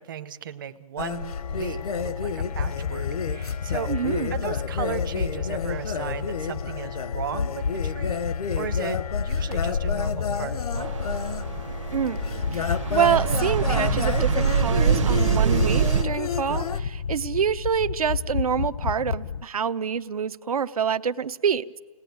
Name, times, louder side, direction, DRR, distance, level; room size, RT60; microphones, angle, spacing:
voice 1, 0.0-11.0 16.5-16.8, right 8 dB, 35° right, 9 dB, 0.8 m, -36 dB
sound 1, 1.0-16.8, left 6 dB, 90° left, 1.0 m, -31 dB
sound 2, 1.3-19.4, left 6 dB, 65° left, 0.7 m, -31 dB
voice 2, 3.9-4.4 11.9-21.8, right 7 dB, 80° right, 11 dB, 0.9 m, -27 dB
sound 3, 10.8-16.0, right 8 dB, 55° right, 1.1 m, -25 dB
29.5 x 19.0 x 9.4 m, 1.4 s
hypercardioid pair, 175°, 19 cm